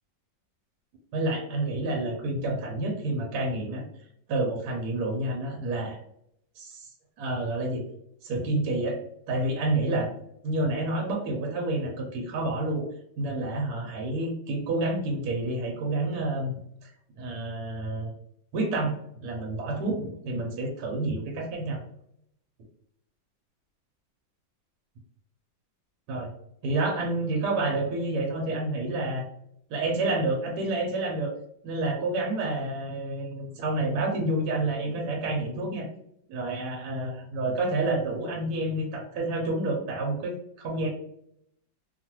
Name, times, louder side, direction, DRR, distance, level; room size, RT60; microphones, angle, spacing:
voice 1, 1.1-3.8 4.3-6.0 6.6-6.9 7.2-7.8 8.2-9.0 9.3-10.1 10.4-12.8 13.2-16.9 17.2-18.1 18.5-18.9 19.2-21.8 26.1-26.3 26.6-29.3 29.7-31.3 31.6-35.8 36.3-40.3 40.6-40.9, right 2 dB, 65° right, 0 dB, 1.1 m, -29 dB
3.0 x 2.1 x 2.9 m, 0.73 s
omnidirectional pair, 2.0 m